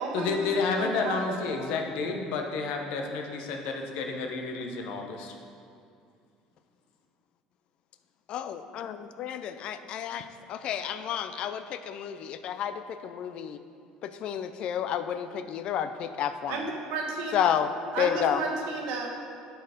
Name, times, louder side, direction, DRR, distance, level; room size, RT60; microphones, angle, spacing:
voice 1, 0.1-5.3, left 4 dB, 75° left, 3 dB, 0.8 m, -30 dB
voice 2, 0.8-1.4 16.5-17.3 17.9-19.1, right 4 dB, 80° right, 1 dB, 1.1 m, -32 dB
voice 3, 8.3-13.6 14.0-16.7 17.3-17.7 18.0-18.4, left 9 dB, 55° left, 11 dB, 0.4 m, -31 dB
7.8 x 4.6 x 5.0 m, 2.4 s
cardioid pair, 125°, 2 cm